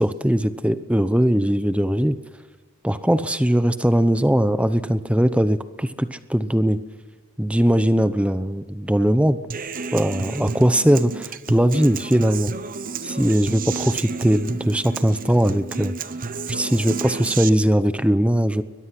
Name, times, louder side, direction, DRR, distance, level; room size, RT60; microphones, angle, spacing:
voice 1, 0.0-2.2 2.8-6.8 7.4-9.4 9.9-12.5 13.0-15.9 16.5-18.6, equal, 5° right, 12 dB, 0.8 m, -20 dB
Human voice / Acoustic guitar, 9.5-17.5, right 4 dB, 40° right, 0.9 m, -31 dB
22.0 x 21.5 x 6.1 m, 1.4 s
head